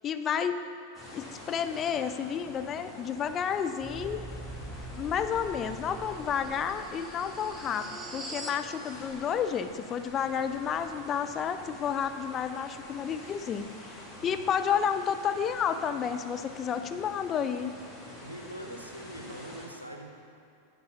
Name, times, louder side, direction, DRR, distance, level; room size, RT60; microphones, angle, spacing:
voice 1, 0.0-0.6 1.1-4.2 4.9-17.7, left 7 dB, 25° left, 8 dB, 0.4 m, -31 dB
sound 1, 0.9-19.7, left 1 dB, ahead, 2.1 m, -47 dB
sound 2, 3.8-8.6, right 2 dB, 20° right, 0.8 m, -43 dB
voice 2, 18.2-20.2, right 1 dB, 85° right, 3 dB, 0.7 m, -43 dB
10.5 x 4.0 x 5.6 m, 2.7 s
figure-of-eight pair, 90°, 0 cm